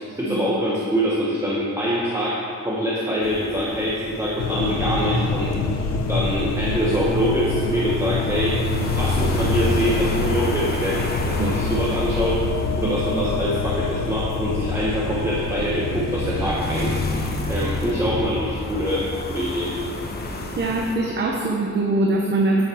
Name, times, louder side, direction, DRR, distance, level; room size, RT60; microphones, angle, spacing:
voice 1, 0.0-8.6 8.9-12.5 12.8-19.8 22.6-22.7, equal, 10° right, -4 dB, 1.0 m, -24 dB
sound 1, 3.2-21.0, left 2 dB, 35° left, 1.0 m, -32 dB
sound 2, 4.4-16.5, left 3 dB, 60° left, 0.8 m, -25 dB
voice 2, 20.6-22.6, right 2 dB, 35° right, 0 dB, 0.8 m, -22 dB
9.7 x 7.6 x 5.5 m, 2.3 s
wide cardioid pair, 165°, 29 cm